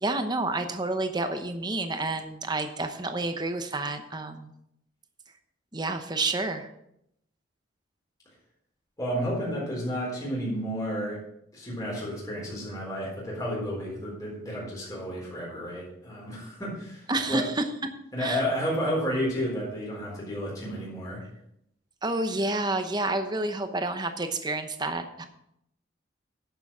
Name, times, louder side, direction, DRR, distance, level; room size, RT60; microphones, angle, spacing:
voice 1, 0.0-4.5 5.7-6.7 17.1-17.6 18.2-18.4 22.0-25.2, right 2 dB, 20° right, 7 dB, 0.9 m, -29 dB
voice 2, 9.0-11.2 11.5-17.4 18.1-21.2, equal, 20° left, -6 dB, 4.0 m, -31 dB
11.0 x 6.9 x 5.5 m, 0.77 s
head